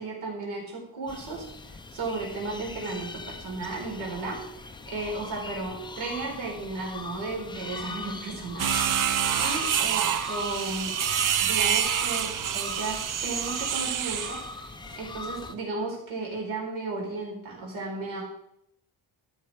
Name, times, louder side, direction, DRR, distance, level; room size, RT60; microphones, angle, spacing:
voice 1, 0.0-1.4 1.9-11.0 11.4-18.2, right 3 dB, 75° right, -1 dB, 4.6 m, -35 dB
sound 1, 1.1-15.6, left 3 dB, 10° left, 0.4 m, -40 dB
sound 2, 8.6-14.5, right 9 dB, 40° right, 0.6 m, -27 dB
13.0 x 7.1 x 4.9 m, 0.75 s
cardioid pair, 155°, 48 cm